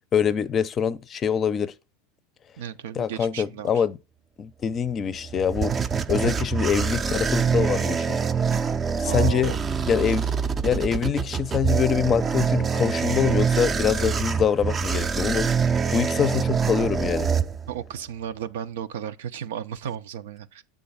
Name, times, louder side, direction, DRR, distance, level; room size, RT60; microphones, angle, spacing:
voice 1, 0.1-1.7 3.0-4.0 4.4-5.7 6.1-8.2 9.0-9.5 9.9-10.3 10.6-15.5 15.9-17.3, left 7 dB, 35° left, 0.5 m, -24 dB
voice 2, 2.6-3.8 9.1-9.6 17.7-20.6, right 9 dB, 80° right, 0.6 m, -34 dB
sound 1, 5.0-18.0, right 6 dB, 25° right, 0.5 m, -25 dB
7.7 x 3.8 x 5.5 m
supercardioid pair, 110°, 0 cm